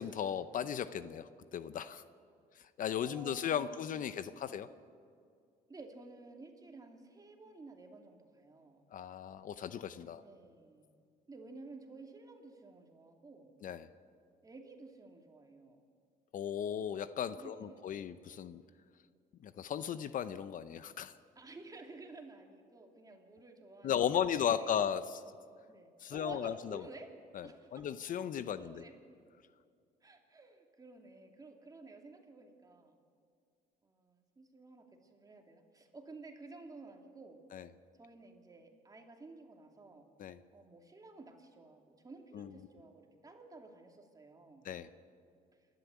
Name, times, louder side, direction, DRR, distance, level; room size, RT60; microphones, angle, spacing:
voice 1, 0.0-2.0 2.8-4.7 8.9-10.2 13.6-13.9 16.3-18.6 19.4-21.2 23.8-25.2 26.0-26.8 27.3-28.8 37.5-37.7 40.2-40.4 42.3-42.5 44.6-44.9, left 9 dB, 50° left, 13 dB, 0.7 m, -36 dB
voice 2, 3.0-4.5 5.7-8.8 10.1-10.9 11.3-13.6 14.4-15.8 17.3-18.1 21.4-24.8 25.7-27.2 27.4-27.9 28.6-28.9 30.0-33.0 33.8-37.4 38.0-40.1 40.5-44.7, right 3 dB, 20° right, 3 dB, 2.7 m, -53 dB
28.0 x 12.0 x 8.3 m, 2.3 s
cardioid pair, 110°, 17 cm